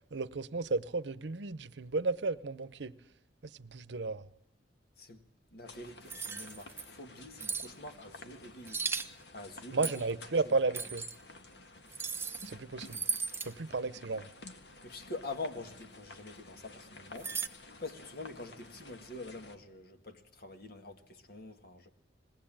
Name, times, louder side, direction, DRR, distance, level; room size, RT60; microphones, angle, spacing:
voice 1, 0.1-3.0 3.4-4.2 9.7-11.1 12.4-13.0 13.4-14.3, right 3 dB, 80° right, 0.7 m, -33 dB
voice 2, 5.0-8.9 9.3-10.0 10.4-10.6 14.8-17.4 17.8-21.9, left 2 dB, 60° left, 1.8 m, -45 dB
sound 1, 5.6-19.6, left 2 dB, 75° left, 1.7 m, -53 dB
sound 2, 6.1-6.8 7.4-7.7 8.7-9.1 9.8-10.1 10.7-11.2 11.9-12.5 12.9-13.5 17.2-17.5, right 5 dB, 15° right, 0.9 m, -36 dB
20.5 x 18.0 x 8.8 m
head